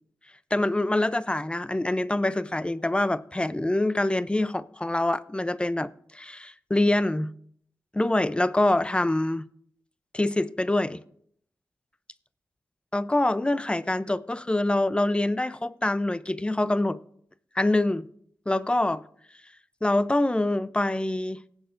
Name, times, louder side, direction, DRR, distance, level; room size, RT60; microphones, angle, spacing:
voice 1, 0.5-7.3 7.9-9.4 10.1-11.0 12.9-17.0 17.6-18.1 18.5-19.0 19.8-21.4, left 1 dB, 15° left, 0.5 m, -25 dB
18.5 x 8.0 x 2.5 m
cardioid pair, 45°, 6 cm